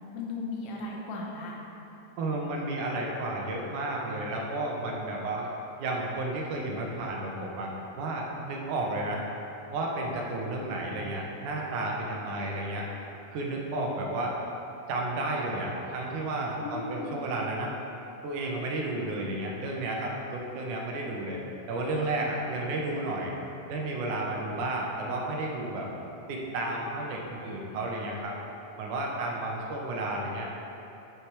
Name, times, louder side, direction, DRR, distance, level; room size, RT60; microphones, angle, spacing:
voice 1, 0.1-1.6 16.6-17.3, left 3 dB, 85° left, -2 dB, 2.8 m, -36 dB
voice 2, 2.2-5.5 5.8-9.2 9.7-12.9 13.3-14.4 14.9-17.7 18.2-21.4 21.7-23.3 23.7-25.9 26.3-28.4 28.8-30.5, right 2 dB, 75° right, -1 dB, 2.2 m, -32 dB
9.9 x 5.8 x 3.2 m, 3.0 s
omnidirectional pair, 4.0 m